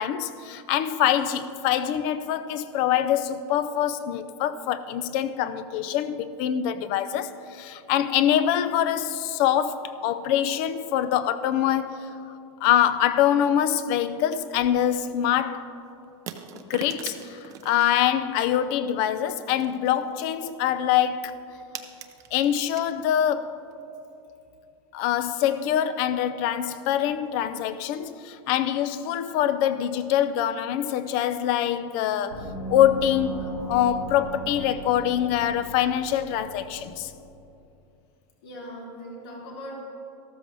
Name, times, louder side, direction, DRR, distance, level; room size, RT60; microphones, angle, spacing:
voice 1, 0.0-12.1 12.6-15.7 16.5-21.4 22.3-23.7 24.9-37.1, left 10 dB, 35° left, 0.4 m, -24 dB
sound 1, 14.5-15.0 16.3-17.9 18.9-19.3 19.6-20.3 20.6-20.7 21.0-21.1 21.3-23.0 23.3-23.4 23.7-23.8, right 9 dB, 20° right, 0.5 m, -41 dB
Gong, 32.3-37.6, right 2 dB, 80° left, 2.3 m, -38 dB
voice 2, 38.4-39.8, equal, 55° left, 3.3 m, -40 dB
14.0 x 13.0 x 3.3 m
supercardioid pair, 165°, 15 cm